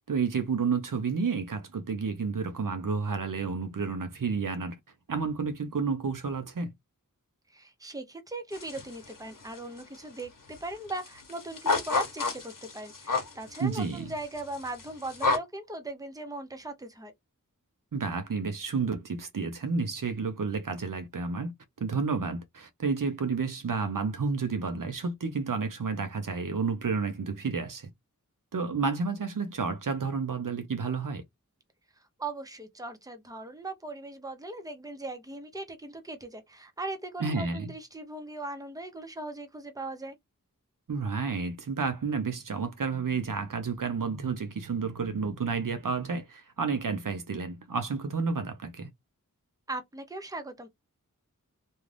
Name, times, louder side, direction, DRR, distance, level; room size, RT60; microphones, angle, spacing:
voice 1, 0.1-4.8 5.1-6.7 13.6-14.0 17.9-21.5 21.8-27.9 28.5-31.2 37.2-37.7 40.9-48.9, right 5 dB, 70° right, 0.7 m, -31 dB
voice 2, 7.5-17.1 32.2-40.2 49.7-50.7, right 2 dB, 10° right, 0.7 m, -39 dB
sound 1, 8.5-9.2 9.4-10.2 10.5-10.6 10.9-15.4, left 3 dB, 70° left, 1.0 m, -30 dB
2.5 x 2.3 x 3.2 m
wide cardioid pair, 60°, 34 cm